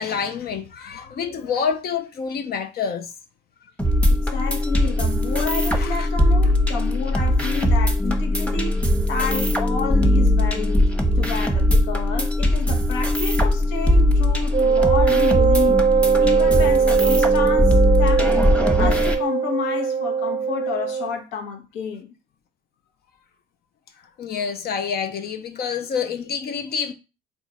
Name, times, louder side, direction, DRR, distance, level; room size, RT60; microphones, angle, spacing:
voice 1, 0.0-3.1 5.8-6.1 24.2-26.9, left 6 dB, 55° left, 0.6 m, -27 dB
sound 1, 3.8-19.1, left 1 dB, 5° left, 1.0 m, -20 dB
voice 2, 4.1-10.9 11.2-15.8 16.2-18.3 18.8-22.1, left 5 dB, 70° left, 0.9 m, -30 dB
Wind instrument woodwind instrument, 14.5-21.2, right 6 dB, 35° right, 0.5 m, -20 dB
3.6 x 2.4 x 4.0 m
hypercardioid pair, 65°, 19 cm